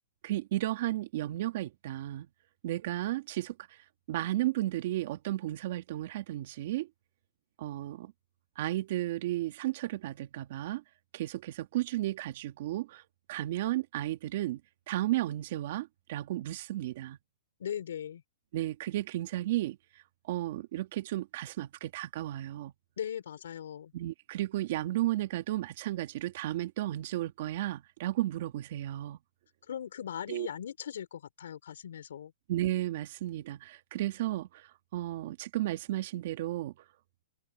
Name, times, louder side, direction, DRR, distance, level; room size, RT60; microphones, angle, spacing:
voice 1, 0.2-2.3 2.6-3.6 4.1-6.9 7.6-8.1 8.6-10.8 11.1-13.0 13.3-14.6 14.9-17.2 18.5-19.8 20.3-22.7 23.9-29.2 30.3-30.5 32.5-36.7, right 15 dB, 45° right, 2.3 m, -33 dB
voice 2, 17.6-18.2 23.0-23.9 29.7-32.3, left 9 dB, 70° left, 4.9 m, -39 dB
open air
hypercardioid pair, 160°, 0 cm